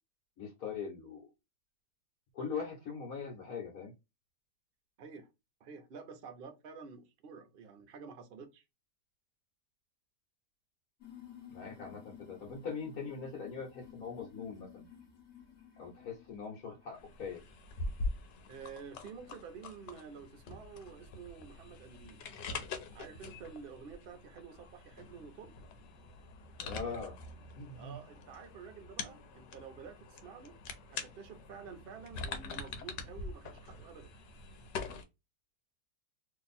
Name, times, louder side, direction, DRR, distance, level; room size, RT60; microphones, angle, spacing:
voice 1, 0.4-1.3 2.3-3.9 11.5-14.9 15.8-17.4 26.6-27.2 27.6-28.0, left 5 dB, 60° left, 1.4 m, -41 dB
voice 2, 5.0-5.3 5.6-8.6 18.5-22.2 22.9-25.5 27.7-30.6 30.9-34.1, right 6 dB, 60° right, 0.6 m, -50 dB
sound 1, 11.0-17.4 17.7-18.3 19.0-19.1 20.0-20.1 20.6-20.8, left 10 dB, 45° left, 1.3 m, -55 dB
sound 2, 16.9-35.0, left 3 dB, 85° left, 1.3 m, -44 dB
2.9 x 2.7 x 4.0 m
omnidirectional pair, 1.8 m